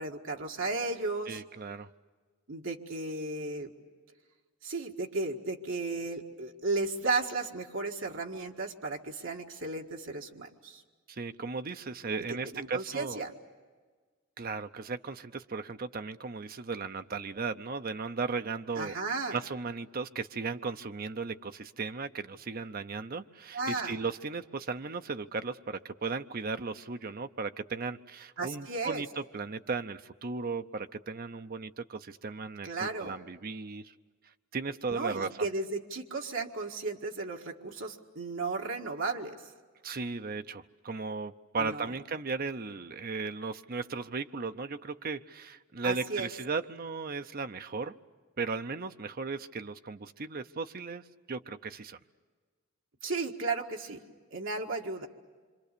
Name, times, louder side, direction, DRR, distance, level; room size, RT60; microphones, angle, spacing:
voice 1, 0.0-1.4 2.5-3.7 4.6-10.8 12.5-13.3 18.8-19.4 23.5-24.0 28.4-29.0 32.6-33.1 34.9-39.4 41.6-41.9 45.8-46.3 53.0-54.0 54.3-55.1, right 3 dB, 65° right, 1 dB, 1.8 m, -34 dB
voice 2, 1.3-1.9 11.1-13.2 14.4-19.0 19.3-29.1 29.3-33.9 34.5-35.5 39.8-47.9 48.4-52.0, right 4 dB, 45° right, 9 dB, 0.7 m, -36 dB
26.5 x 26.0 x 6.8 m, 1.4 s
head